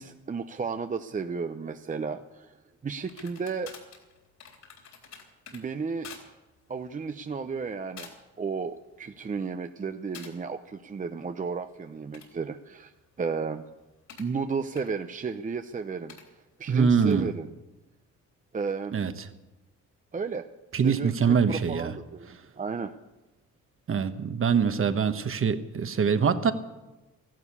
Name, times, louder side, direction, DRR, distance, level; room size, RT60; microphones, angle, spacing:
voice 1, 0.0-2.6 2.8-3.7 5.5-6.1 6.7-8.1 8.4-12.9 13.2-13.7 14.2-16.2 16.6-17.5 18.5-19.0 20.1-20.5 20.8-22.9, right 5 dB, 25° right, 8 dB, 0.7 m, -33 dB
sound 1, 3.0-5.6 6.0-6.3 6.6-6.9 7.5-7.7 8.0-8.4 8.8-9.2 10.1-10.3 11.9-14.3 14.8-14.9 16.1-16.2 17.0-17.2, left 6 dB, 70° left, 3.7 m, -48 dB
voice 2, 16.7-17.3 18.9-19.3 20.7-21.9 23.9-26.5, right 6 dB, 45° right, 10 dB, 1.3 m, -24 dB
14.0 x 12.0 x 8.4 m, 1.1 s
cardioid pair, 90°, 30 cm